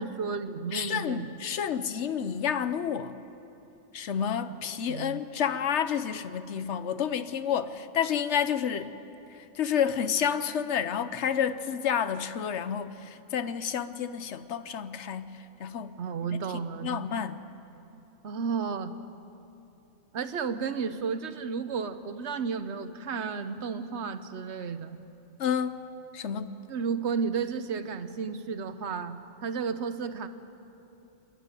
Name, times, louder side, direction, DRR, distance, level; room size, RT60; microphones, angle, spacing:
voice 1, 0.0-1.4 1.7-1.8 4.9-5.2 16.0-17.0 18.2-18.9 20.1-25.0 26.7-30.3, right 5 dB, 65° right, 1.1 m, -33 dB
voice 2, 0.7-3.2 3.9-9.0 9.3-16.0 16.8-17.4 25.4-25.8 26.1-26.6, left 8 dB, 70° left, 1.0 m, -30 dB
28.0 x 11.5 x 9.1 m
omnidirectional pair, 1.3 m